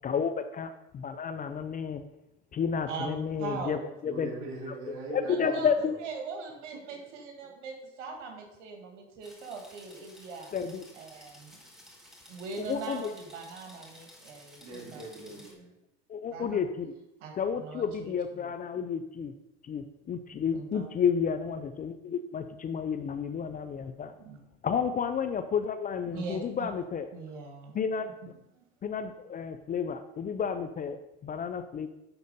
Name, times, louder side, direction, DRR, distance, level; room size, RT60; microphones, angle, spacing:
voice 1, 0.0-2.0 2.5-4.3 5.1-5.9 10.5-10.8 12.6-13.1 16.1-16.9 17.4-19.3 19.6-24.1 24.6-27.1 27.7-28.1 28.8-31.9, left 6 dB, 25° left, 9 dB, 0.5 m, -31 dB
voice 2, 2.9-3.9 5.3-5.7 6.0-10.5 10.9-11.6 12.3-15.0 16.3-16.6 17.2-17.3 17.6-18.5 20.5-20.9 24.2-24.4 26.1-26.7 27.1-27.7 28.6-28.7, right 4 dB, 85° right, 2 dB, 2.0 m, -41 dB
voice 3, 4.0-5.7 6.7-6.8 14.6-15.8, right 2 dB, 50° right, -3 dB, 3.4 m, -41 dB
sound 1, 9.2-15.5, left 1 dB, ahead, 2.0 m, -54 dB
11.0 x 4.1 x 5.3 m, 0.87 s
supercardioid pair, 110°, 35 cm